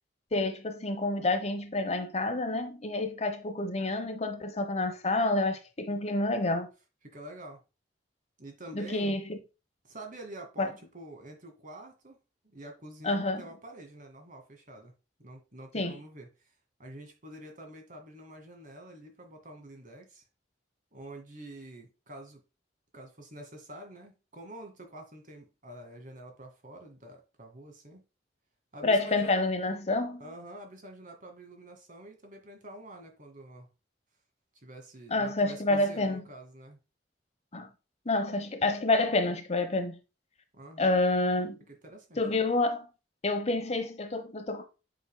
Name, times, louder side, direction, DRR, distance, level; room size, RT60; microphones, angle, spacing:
voice 1, 0.3-6.7 8.7-9.4 10.6-10.7 13.0-13.4 15.7-16.0 28.8-30.2 35.1-36.2 37.5-37.7 38.0-40.0 40.8-41.6 42.2-42.9 43.2-44.6, left 2 dB, 35° left, 1.0 m, -28 dB
voice 2, 7.0-7.6 8.4-9.2 9.8-12.2 12.4-14.9 15.2-16.3 16.8-20.2 20.9-22.4 22.9-28.0 28.7-29.4 30.2-33.7 34.6-36.8 40.5-40.9 41.7-42.2, right 1 dB, 45° right, 2.0 m, -47 dB
8.2 x 5.4 x 2.2 m
head